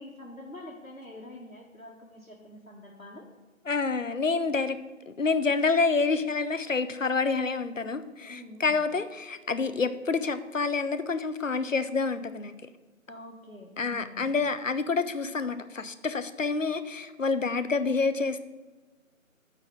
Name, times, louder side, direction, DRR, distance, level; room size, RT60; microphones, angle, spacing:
voice 1, 0.0-3.2 8.3-8.8 13.1-14.3, left 1 dB, 85° left, -4 dB, 1.7 m, -46 dB
voice 2, 3.7-4.8 5.1-12.5 13.8-18.4, left 4 dB, 65° left, 12 dB, 0.8 m, -28 dB
8.8 x 4.2 x 7.2 m, 1.3 s
figure-of-eight pair, 160°, 41 cm